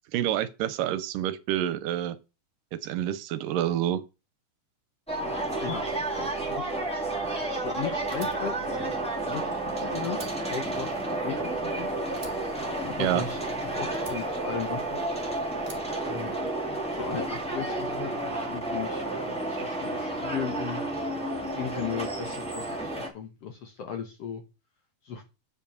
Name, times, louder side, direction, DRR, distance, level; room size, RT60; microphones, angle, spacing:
voice 1, 0.1-2.2 2.8-4.0 13.0-13.2, right 12 dB, 80° right, 2.4 m, -28 dB
sound 1, 5.1-23.1, right 2 dB, ahead, 1.6 m, -31 dB
voice 2, 6.2-6.8 7.6-8.7 9.2-10.2 10.5-11.9 12.9-15.0 16.1-16.5 16.9-20.8 21.6-22.9 23.1-24.4 25.0-25.2, left 7 dB, 65° left, 1.7 m, -36 dB
Fire, 8.1-9.7 10.0-11.8 12.2-13.5 13.9-15.1 15.6-16.8, right 3 dB, 25° right, 1.3 m, -49 dB
9.1 x 5.2 x 6.9 m
omnidirectional pair, 3.9 m